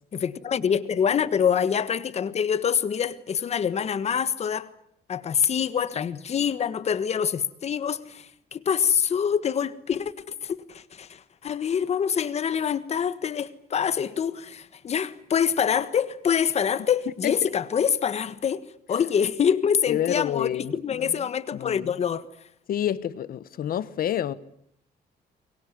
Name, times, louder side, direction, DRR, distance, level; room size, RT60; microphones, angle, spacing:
voice 1, 0.1-4.7 5.1-10.1 10.4-22.3, left 7 dB, 40° left, 1.4 m, -25 dB
voice 2, 19.9-21.2 21.5-21.9 22.7-24.3, left 10 dB, 55° left, 1.2 m, -28 dB
24.5 x 22.0 x 9.8 m
cardioid pair, 170°, 17 cm